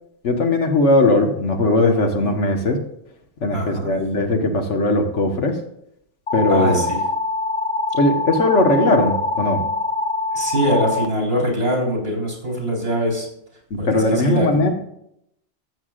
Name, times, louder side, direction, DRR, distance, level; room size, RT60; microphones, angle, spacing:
voice 1, 0.2-2.8 3.4-5.6 6.3-6.9 7.9-9.7 13.7-14.7, left 2 dB, 80° left, 4 dB, 1.6 m, -19 dB
voice 2, 3.5-3.9 6.5-7.0 10.3-13.3 13.8-14.7, equal, 55° right, -1 dB, 4.1 m, -23 dB
sound 1, 6.3-11.1, left 3 dB, 50° left, 1.1 m, -24 dB
14.0 x 8.2 x 2.4 m, 0.75 s
omnidirectional pair, 1.2 m